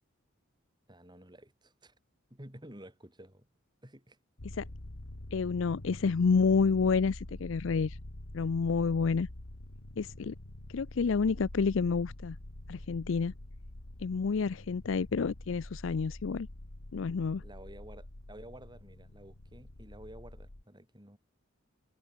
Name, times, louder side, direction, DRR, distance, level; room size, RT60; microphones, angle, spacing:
voice 1, 0.9-1.9 2.3-3.5 3.8-4.2 17.4-21.2, right 1 dB, 20° right, 6.8 m, -51 dB
sound 1, 4.4-20.6, left 1 dB, 90° left, 2.1 m, -46 dB
voice 2, 5.3-8.0 8.3-9.3 10.0-10.3 10.7-12.4 12.7-13.3 14.0-16.5 16.9-17.4, left 5 dB, 65° left, 0.5 m, -29 dB
head